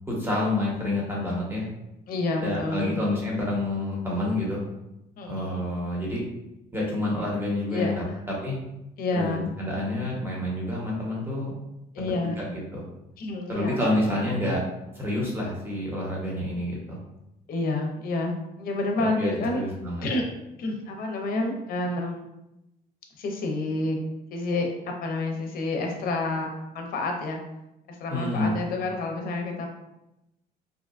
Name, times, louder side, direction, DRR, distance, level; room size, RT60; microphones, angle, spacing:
voice 1, 0.1-1.7 2.4-4.6 5.3-6.2 6.7-8.6 9.1-11.5 12.2-12.8 13.5-14.6 14.9-17.0 19.0-20.0 28.1-28.5, left 1 dB, 15° right, -4 dB, 0.9 m, -28 dB
voice 2, 2.1-2.9 5.2-5.7 7.7-8.2 9.0-9.5 11.9-12.5 13.2-13.8 14.1-14.3 17.5-19.6 20.0-20.2 20.6-22.3 23.2-24.0 24.3-26.5 26.7-27.4 27.9-29.7, left 2 dB, 60° left, 2 dB, 0.5 m, -29 dB
2.7 x 2.2 x 2.4 m, 0.90 s
cardioid pair, 110°, 17 cm